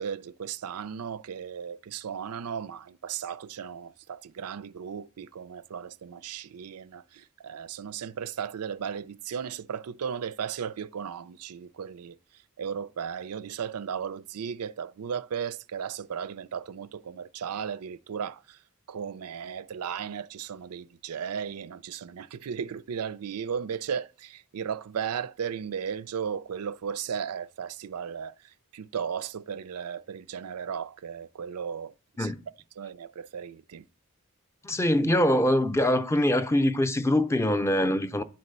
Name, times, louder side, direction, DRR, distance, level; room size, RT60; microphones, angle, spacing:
voice 1, 0.0-12.2 12.6-18.4 18.9-28.4 28.7-31.9 32.2-32.3 32.8-33.8, right 7 dB, 85° right, 0.4 m, -35 dB
voice 2, 34.6-38.2, left 1 dB, 10° left, 0.5 m, -23 dB
10.5 x 4.1 x 6.6 m
head